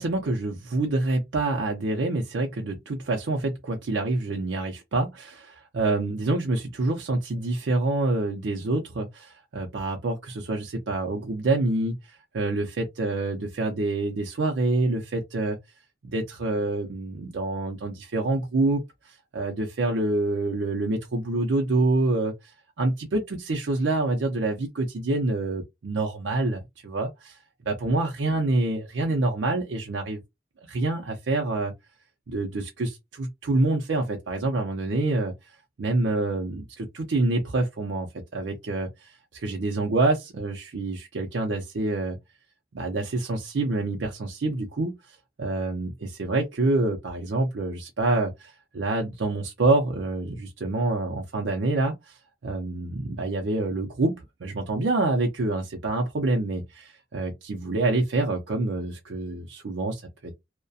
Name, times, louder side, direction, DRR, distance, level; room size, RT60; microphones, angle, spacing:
voice 1, 0.0-15.6 16.1-22.3 22.8-27.4 27.7-30.2 30.7-31.7 32.3-35.3 35.8-42.2 42.7-45.0 45.4-52.2 52.4-60.4, right 2 dB, 80° right, 0.5 m, -27 dB
2.3 x 2.1 x 2.5 m
head